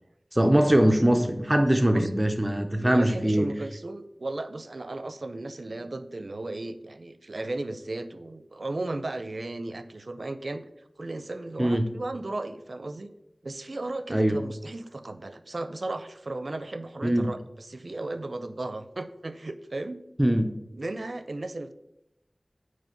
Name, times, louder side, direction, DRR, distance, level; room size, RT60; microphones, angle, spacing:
voice 1, 0.3-3.5 11.6-11.8 14.1-14.3 17.0-17.3 20.2-20.5, right 1 dB, 20° right, 5 dB, 0.6 m, -22 dB
voice 2, 2.8-10.6 11.0-13.1 13.4-20.0 20.7-21.7, right 2 dB, 70° right, 11 dB, 0.5 m, -35 dB
9.1 x 3.2 x 5.7 m, 0.87 s
wide cardioid pair, 55°, 0 cm